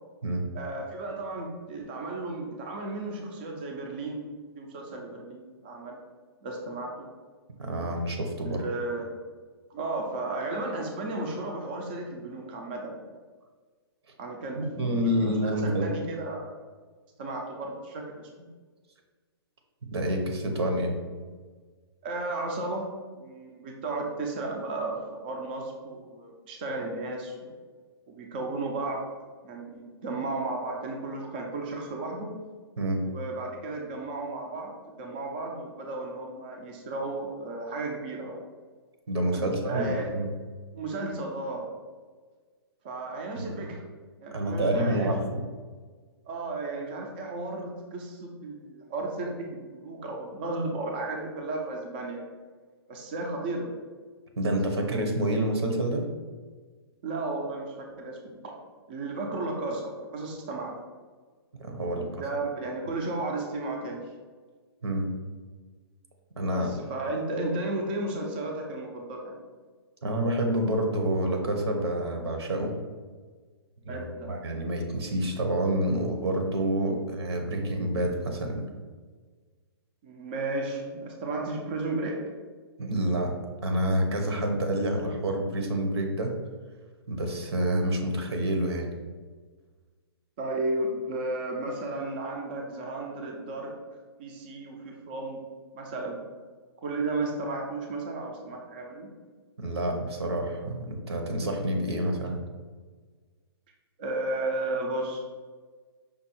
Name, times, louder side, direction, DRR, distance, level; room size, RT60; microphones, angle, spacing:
voice 1, 0.5-4.2 4.5-6.0 6.4-7.1 8.4-9.0 9.7-13.0 14.2-16.5 17.2-18.3 22.0-22.9 23.1-27.5 28.1-29.1 29.4-32.4 33.0-34.7 35.0-38.4 39.3-40.1 40.7-41.7 42.8-43.9 44.2-45.1 46.3-52.2 52.9-53.7 54.7-55.0 57.0-58.6 58.9-60.7 61.9-64.0 66.5-69.4 73.9-74.3 80.0-82.2 90.4-93.8 94.2-95.4 95.7-96.2 96.8-99.1 104.0-105.2, right 2 dB, 25° right, 0 dB, 0.4 m, -34 dB
voice 2, 7.6-8.6 14.6-15.9 19.9-21.0 32.8-33.0 39.1-40.3 43.4-43.5 44.3-45.4 54.4-56.0 61.6-62.1 64.8-65.1 66.4-66.7 70.0-72.7 73.8-78.7 82.8-83.3 83.6-86.3 87.1-88.9 99.6-102.4, right 1 dB, 75° right, 3 dB, 1.0 m, -28 dB
5.3 x 2.3 x 4.2 m, 1.5 s
hypercardioid pair, 170°, 14 cm